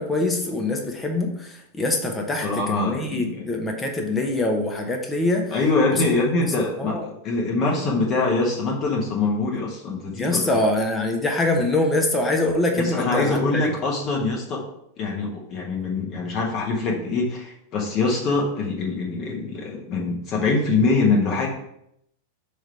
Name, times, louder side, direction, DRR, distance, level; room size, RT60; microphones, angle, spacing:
voice 1, 0.0-5.6 5.9-6.0 6.4-7.0 10.1-13.7, left 2 dB, 15° left, 2 dB, 1.1 m, -24 dB
voice 2, 2.4-3.5 5.5-10.5 12.8-14.6 15.0-21.5, left 3 dB, 35° left, -1 dB, 1.3 m, -24 dB
6.3 x 3.4 x 5.6 m, 0.76 s
figure-of-eight pair, 90°, 0 cm